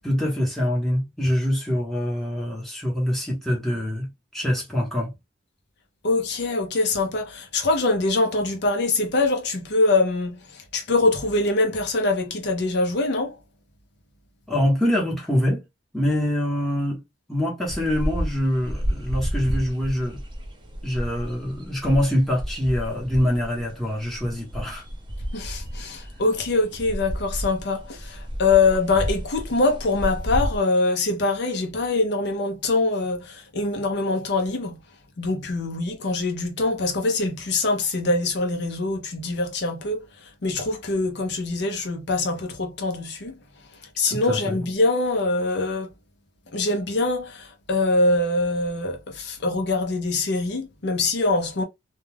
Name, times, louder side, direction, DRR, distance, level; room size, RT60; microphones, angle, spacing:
voice 1, 0.0-4.1 4.3-5.1 14.5-15.6 15.9-17.0 17.3-20.2 20.8-24.8 44.1-44.6, left 1 dB, ahead, 1.0 m, -24 dB
voice 2, 6.0-13.4 25.3-34.8 35.2-40.0 40.4-43.3 44.0-45.9 46.5-51.6, left 3 dB, 60° left, 0.6 m, -24 dB
sound 1, 17.7-30.6, equal, 25° right, 0.5 m, -31 dB
2.3 x 2.2 x 3.2 m
head